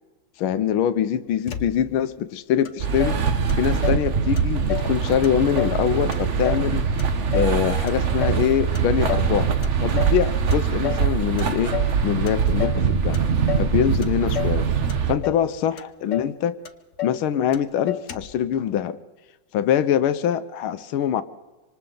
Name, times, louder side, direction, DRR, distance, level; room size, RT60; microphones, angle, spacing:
voice 1, 0.4-3.2 3.6-6.8 7.3-11.7 12.0-13.2 13.6-14.7 15.1-16.6 17.0-19.0 19.5-21.2, left 9 dB, 80° left, 12 dB, 1.7 m, -23 dB
Motor vehicle (road), 1.5-2.1 2.6-2.7 3.0-4.1 4.4-5.0 5.2-5.8 6.1-7.6 7.9-8.5 8.7-9.3 9.6-10.2 10.5-11.1 11.4-12.0 12.3-12.8 13.1-13.7 14.0-14.6 14.9-15.5 15.8-15.9 16.1-16.4 16.6-17.2 17.5-17.6 17.9-18.4, left 11 dB, 50° left, 1.1 m, -31 dB
sound 1, 2.8-15.1, right 6 dB, 45° right, 1.1 m, -23 dB
26.5 x 26.0 x 3.9 m, 1.2 s
omnidirectional pair, 2.3 m